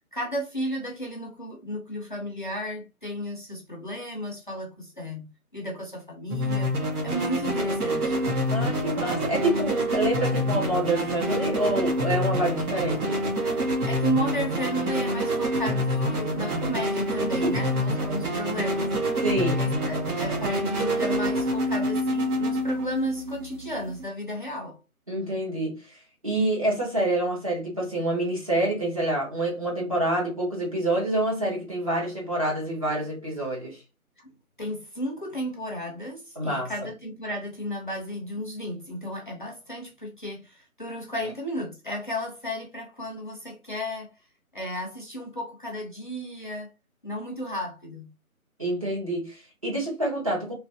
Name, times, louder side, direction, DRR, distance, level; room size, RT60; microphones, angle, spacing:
voice 1, 0.1-6.7 7.0-8.2 13.8-18.9 19.6-24.8 34.2-34.3 34.6-44.1 44.5-46.7 47.0-48.1, equal, 35° left, 0.6 m, -33 dB
sound 1, 6.3-24.0, equal, 85° right, 1.2 m, -27 dB
voice 2, 8.5-13.2 17.4-17.6 19.2-19.6 25.1-33.8 36.4-36.7 48.6-50.5, right 1 dB, 25° right, 0.8 m, -27 dB
3.0 x 2.4 x 2.5 m
figure-of-eight pair, 160°, 43 cm